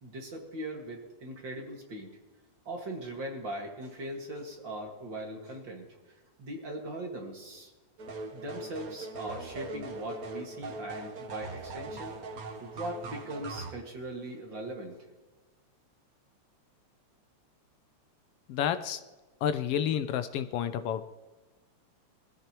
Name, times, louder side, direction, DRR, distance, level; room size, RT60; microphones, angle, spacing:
voice 1, 0.0-2.1 2.7-5.9 6.4-7.7 8.3-12.2 12.6-15.0, right 1 dB, 40° right, 1 dB, 2.4 m, -40 dB
sound 1, 8.0-13.7, right 3 dB, 85° right, 0.8 m, -41 dB
voice 2, 18.5-19.0 19.4-21.1, left 9 dB, 80° left, 10 dB, 1.4 m, -30 dB
21.0 x 14.5 x 3.0 m, 1.2 s
omnidirectional pair, 3.3 m